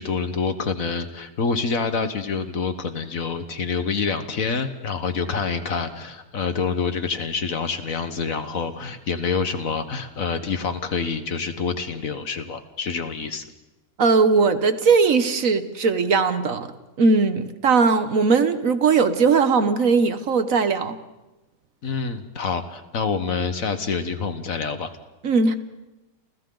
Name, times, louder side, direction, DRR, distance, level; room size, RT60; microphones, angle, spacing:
voice 1, 0.0-13.4 21.8-24.9, left 5 dB, 55° left, 1.6 m, -27 dB
voice 2, 14.0-16.7 17.0-21.0 25.2-25.5, right 4 dB, 55° right, 1.3 m, -19 dB
29.5 x 28.5 x 3.9 m
omnidirectional pair, 1.8 m